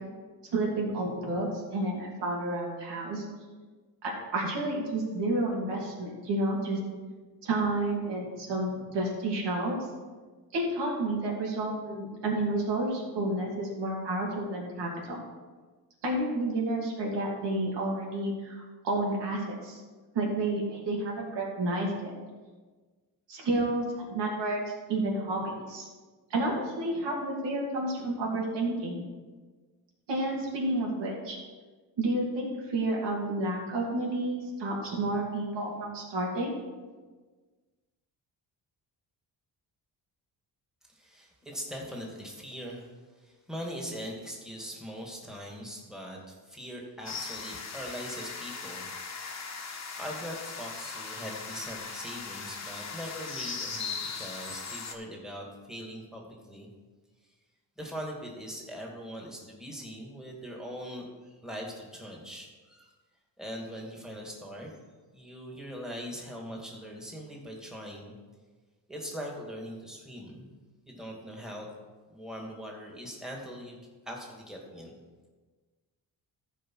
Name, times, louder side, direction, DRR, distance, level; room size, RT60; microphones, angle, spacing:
voice 1, 0.5-3.2 4.0-6.8 7.4-9.9 10.5-15.2 16.0-19.8 20.1-22.1 23.3-25.9 26.3-29.0 30.1-31.4 32.0-36.5, right 2 dB, 85° right, -2 dB, 2.8 m, -30 dB
voice 2, 40.9-48.9 49.9-56.7 57.8-62.9 63.4-64.8 65.1-68.1 68.9-70.5 70.9-71.7 72.1-73.8 74.1-74.9, equal, ahead, -1 dB, 2.3 m, -41 dB
sound 1, 47.1-55.0, left 5 dB, 40° left, 1.3 m, -39 dB
14.5 x 5.0 x 4.8 m, 1.3 s
cardioid pair, 95°, 41 cm